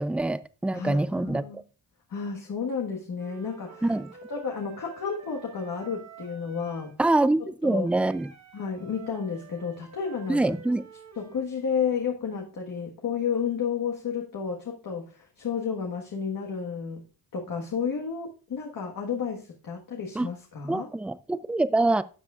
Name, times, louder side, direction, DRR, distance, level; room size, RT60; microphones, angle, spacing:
voice 1, 0.0-1.6 3.8-4.1 7.0-8.3 10.3-10.9 20.2-20.3 20.6-22.0, right 2 dB, 5° right, 0.3 m, -25 dB
voice 2, 0.7-1.6 2.1-3.9 4.3-6.9 7.6-7.9 8.5-10.6 11.2-17.0 17.3-20.9, left 6 dB, 55° left, 1.5 m, -31 dB
Wind instrument woodwind instrument, 3.2-7.0 7.8-11.5, right 5 dB, 45° right, 1.4 m, -49 dB
12.5 x 7.3 x 2.4 m
cardioid pair, 95°, 39 cm